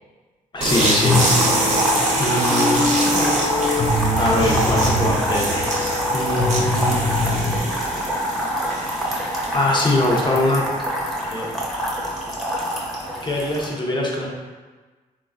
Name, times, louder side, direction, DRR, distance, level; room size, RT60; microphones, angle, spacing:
voice 1, 0.5-1.2 2.2-2.8 4.2-5.7 6.1-7.0 9.5-10.6 11.3-11.5 13.2-14.3, left 1 dB, 30° left, -2 dB, 0.7 m, -22 dB
sound 1, 0.6-10.1, right 2 dB, 50° right, 0.8 m, -25 dB
sound 2, 1.0-7.6, left 2 dB, 70° left, 0.5 m, -23 dB
sound 3, 1.0-13.7, right 1 dB, ahead, 0.8 m, -25 dB
3.1 x 2.2 x 2.4 m, 1.4 s
supercardioid pair, 60°, 15 cm